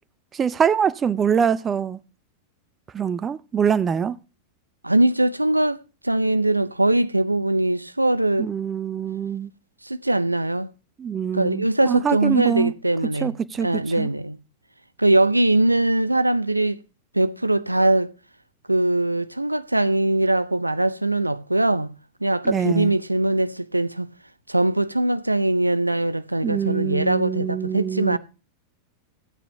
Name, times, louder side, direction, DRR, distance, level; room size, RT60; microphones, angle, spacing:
voice 1, 0.3-2.0 2.9-4.1 8.4-9.5 11.0-12.7 13.2-14.1 22.4-22.9 26.4-28.2, right 7 dB, 20° right, 0.6 m, -24 dB
voice 2, 4.8-8.5 9.8-10.7 11.3-14.4 15.0-16.8 17.1-18.1 18.7-21.9 22.2-24.1 24.5-28.2, right 1 dB, 85° right, 0.6 m, -21 dB
15.0 x 9.1 x 3.3 m
figure-of-eight pair, 90°, 0 cm